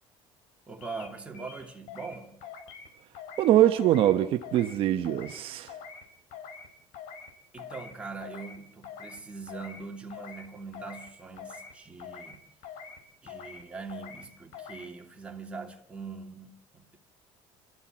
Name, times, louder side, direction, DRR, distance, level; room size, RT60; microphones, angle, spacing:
voice 1, 0.7-2.4 7.5-12.4 13.2-17.0, right 4 dB, 10° right, 2.7 m, -42 dB
sound 1, 0.8-1.1 1.3-2.1 2.4-2.9 3.1-3.5 3.8-4.1 4.4-4.8 5.0-5.4 5.7-6.0 6.3-6.7 6.9-7.3 7.6-7.9 8.2-8.6 8.8-9.2 9.5-9.8 10.1-10.5 10.7-11.1 11.4-11.7 12.0-12.4 12.6-13.0 13.3-13.6 13.9-14.2 14.5-14.9, left 6 dB, 70° left, 5.2 m, -44 dB
voice 2, 3.4-5.7, right 12 dB, 50° right, 1.2 m, -23 dB
28.0 x 14.0 x 7.6 m
cardioid pair, 155°, 12 cm